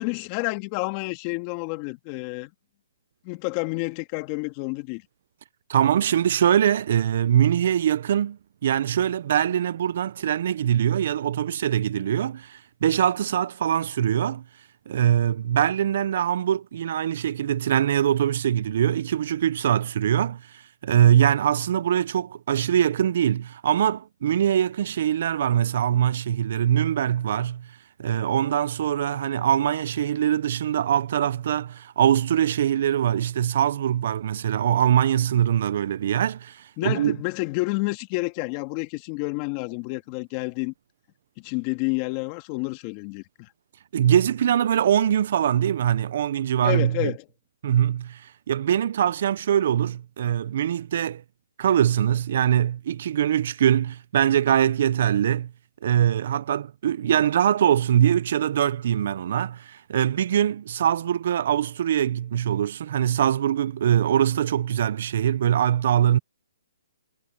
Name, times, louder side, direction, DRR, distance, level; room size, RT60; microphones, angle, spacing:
voice 1, 0.0-2.5 3.2-5.0 36.8-40.7 41.4-43.5 46.6-47.2, left 26 dB, 30° left, 2.1 m, -29 dB
voice 2, 5.7-14.4 14.9-27.7 28.0-37.2 43.9-47.1 47.6-51.2 51.6-55.5 55.8-66.2, right 10 dB, 55° right, 0.5 m, -23 dB
hypercardioid pair, 150°, 0 cm